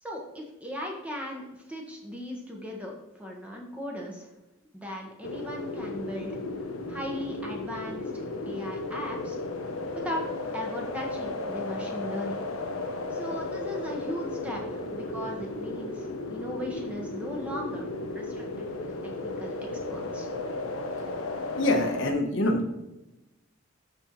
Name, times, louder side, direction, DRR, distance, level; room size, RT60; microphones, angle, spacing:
voice 1, 0.0-4.3 4.7-6.4 6.9-9.4 9.9-10.2 10.5-12.4 13.1-18.9 19.2-19.6 19.9-20.3, equal, 5° right, -1 dB, 1.4 m, -37 dB
sound 1, 5.2-22.1, left 2 dB, 90° left, 0.8 m, -35 dB
voice 2, 13.1-13.4 21.5-22.7, left 1 dB, 60° left, 3 dB, 1.1 m, -26 dB
12.5 x 4.4 x 3.1 m, 0.98 s
head